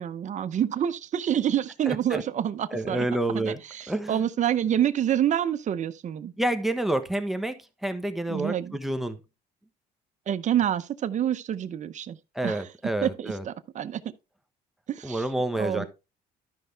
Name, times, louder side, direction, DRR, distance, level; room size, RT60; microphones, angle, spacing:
voice 1, 0.0-3.1 3.3-6.3 8.3-8.8 10.3-12.2 12.4-12.6 13.0-14.0 14.9-15.2 15.6-15.9, right 10 dB, 45° right, 0.8 m, -27 dB
voice 2, 1.9-2.2 2.7-3.6 3.9-4.2 6.4-9.2 12.3-13.4 15.0-15.9, right 1 dB, ahead, 1.2 m, -29 dB
12.5 x 5.5 x 3.4 m
cardioid pair, 110°, 17 cm